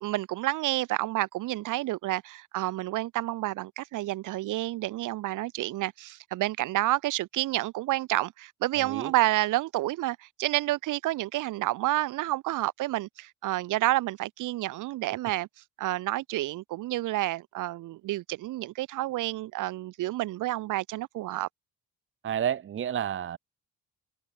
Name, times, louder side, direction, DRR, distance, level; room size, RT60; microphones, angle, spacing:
voice 1, 0.0-15.5 15.8-21.5, right 16 dB, 90° right, 2.2 m, -29 dB
voice 2, 8.8-9.1 22.2-23.4, right 9 dB, 40° right, 0.7 m, -30 dB
cardioid pair, 90°, 30 cm